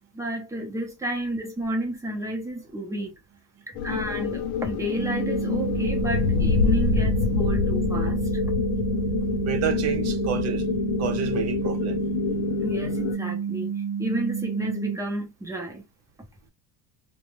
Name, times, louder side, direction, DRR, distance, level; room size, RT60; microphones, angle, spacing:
voice 1, 0.1-3.2 3.7-8.4 12.6-15.8, right 1 dB, 10° right, 0.6 m, -31 dB
sound 1, 3.8-13.2, left 6 dB, 75° left, 0.7 m, -26 dB
sound 2, 5.0-15.0, right 7 dB, 80° right, 0.5 m, -30 dB
voice 2, 9.5-10.6 11.0-12.0, right 8 dB, 50° right, 0.7 m, -29 dB
2.3 x 2.2 x 3.0 m
cardioid pair, 135°, 34 cm